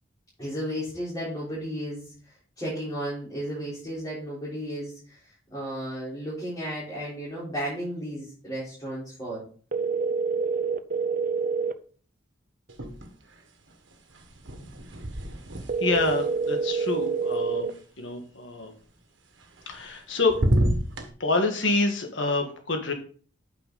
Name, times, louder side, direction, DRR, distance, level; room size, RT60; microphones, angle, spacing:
voice 1, 0.4-2.1 2.6-5.2 5.5-9.4, equal, 20° left, -9 dB, 4.0 m, -33 dB
sound 1, 9.7-11.7 15.7-17.7, right 5 dB, 45° right, 0.6 m, -27 dB
sound 2, 12.7-13.4 13.7-17.8 19.4-20.0 20.3-21.1, right 1 dB, 80° right, 1.6 m, -30 dB
voice 2, 15.8-17.7 18.0-18.7 19.7-20.3 21.2-22.9, left 3 dB, 80° left, 4 dB, 1.6 m, -27 dB
8.8 x 5.9 x 4.0 m, 0.42 s
head